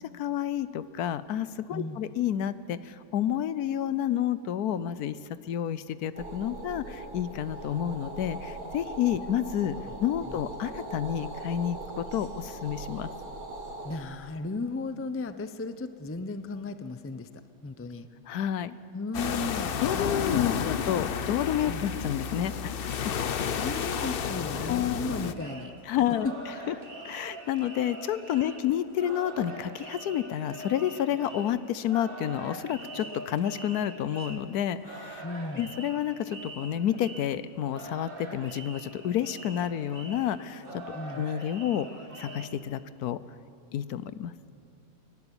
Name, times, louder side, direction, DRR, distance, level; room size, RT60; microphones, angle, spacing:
voice 1, 0.1-5.2 5.5-13.1 18.3-18.8 19.8-22.8 24.7-25.0 25.9-26.3 26.7-26.8 27.0-35.2 35.6-40.8 41.2-41.9 42.2-43.2 43.7-44.3, left 10 dB, 90° left, 15 dB, 1.2 m, -30 dB
voice 2, 1.7-2.0 10.3-10.4 13.8-17.3 17.6-18.1 18.9-21.1 21.7-21.9 23.5-25.8 28.4-28.5 35.2-35.7 40.9-41.2, left 3 dB, 20° left, 10 dB, 0.4 m, -36 dB
sound 1, 6.2-14.0, right 2 dB, 70° right, 2.4 m, -40 dB
sound 2, 19.1-25.3, left 7 dB, 55° left, 0.7 m, -31 dB
sound 3, 25.2-42.5, right 1 dB, 35° right, 2.0 m, -43 dB
23.0 x 12.0 x 9.9 m, 2.5 s
omnidirectional pair, 1.6 m